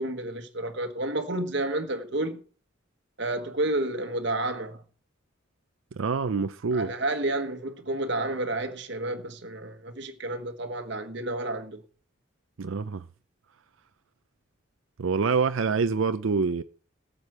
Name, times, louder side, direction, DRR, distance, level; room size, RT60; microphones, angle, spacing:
voice 1, 0.0-2.4 3.2-4.8 6.7-11.8, right 2 dB, 60° right, 1.4 m, -30 dB
voice 2, 5.9-6.9 12.6-13.1 15.0-16.6, right 5 dB, 75° right, 0.5 m, -26 dB
13.5 x 5.1 x 7.9 m
head